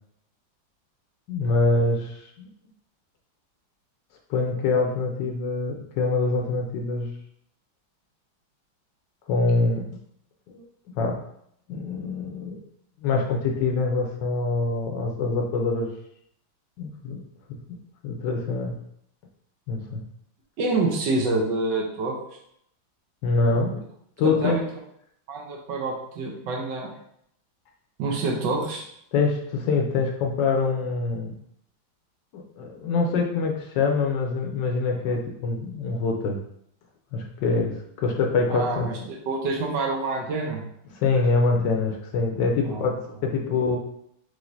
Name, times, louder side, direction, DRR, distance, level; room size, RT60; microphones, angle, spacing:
voice 1, 1.3-2.5 4.3-7.1 9.3-9.8 10.5-10.6 11.0-11.1 11.7-12.6 13.0-15.9 16.8-17.2 17.5-17.6 18.0-18.7 19.7-20.0 23.2-23.8 24.2-24.6 29.1-31.3 32.3-36.4 37.1-38.9 40.9-43.8, left 3 dB, 70° left, 1 dB, 1.2 m, -25 dB
voice 2, 20.6-22.2 24.2-24.6 25.3-26.9 28.0-28.8 38.5-40.6 42.6-42.9 43.5-43.6, right 3 dB, 70° right, 0 dB, 1.3 m, -27 dB
4.9 x 3.3 x 2.6 m, 0.72 s
omnidirectional pair, 2.2 m